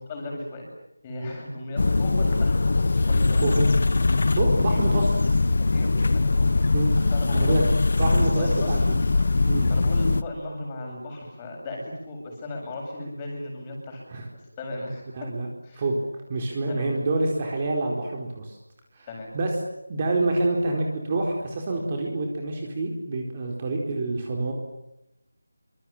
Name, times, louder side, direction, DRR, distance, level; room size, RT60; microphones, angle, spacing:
voice 1, 0.1-0.7 1.0-2.5 2.8-3.5 4.7-4.8 5.7-6.8 7.1-7.7 8.3-8.8 9.7-14.0 14.3-15.3 15.6-15.8 16.7-16.9 19.1-19.3, left 1 dB, 15° left, 0 dB, 7.7 m, -36 dB
sound 1, 1.8-10.2, left 3 dB, 45° left, 1.4 m, -21 dB
voice 2, 4.3-5.4 6.7-6.9 7.3-7.6 8.0-9.1 9.5-9.7 13.0-13.1 14.1-14.3 15.1-15.5 15.7-16.0 16.3-18.6 18.9-19.1 19.3-19.5 19.9-24.5, right 2 dB, 20° right, 1 dB, 4.4 m, -27 dB
28.0 x 26.0 x 7.4 m, 0.88 s
figure-of-eight pair, 175°, 0 cm